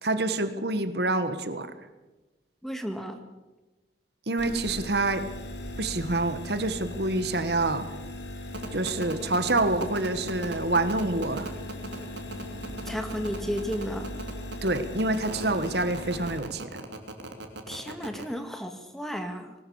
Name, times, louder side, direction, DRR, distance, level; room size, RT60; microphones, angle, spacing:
voice 1, 0.0-1.7 4.3-5.2 5.8-7.8 8.7-11.5 14.6-16.8, right 2 dB, 65° right, 11 dB, 1.5 m, -27 dB
voice 2, 2.6-3.2 12.8-14.1 17.7-19.6, equal, ahead, 6 dB, 1.9 m, -33 dB
sound 1, 4.4-16.4, left 1 dB, 80° left, 3.0 m, -39 dB
sound 2, 8.5-18.2, right 2 dB, 90° right, 3.0 m, -37 dB
20.5 x 19.0 x 7.1 m, 1.1 s
head